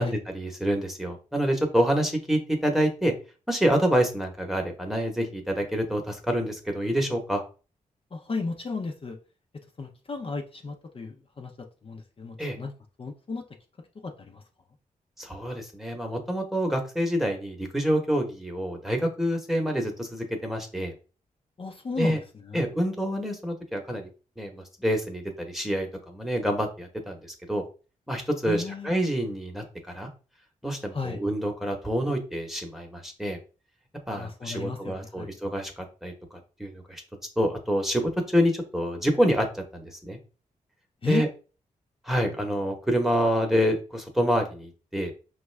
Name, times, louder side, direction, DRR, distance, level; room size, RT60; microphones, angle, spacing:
voice 1, 0.0-3.1 3.5-7.4 12.4-12.6 15.2-20.9 22.0-22.2 22.5-24.1 24.4-27.6 28.1-30.1 30.6-33.4 34.1-37.0 37.4-40.2 41.0-41.3 42.1-45.1, equal, ahead, 1.0 m, -27 dB
voice 2, 8.1-9.2 9.8-12.7 13.0-13.4 13.9-14.4 21.6-22.6 28.5-29.0 30.9-31.2 34.1-35.3 41.0-41.3, left 4 dB, 40° left, 0.6 m, -34 dB
5.1 x 2.4 x 3.2 m
cardioid pair, 70°, 15 cm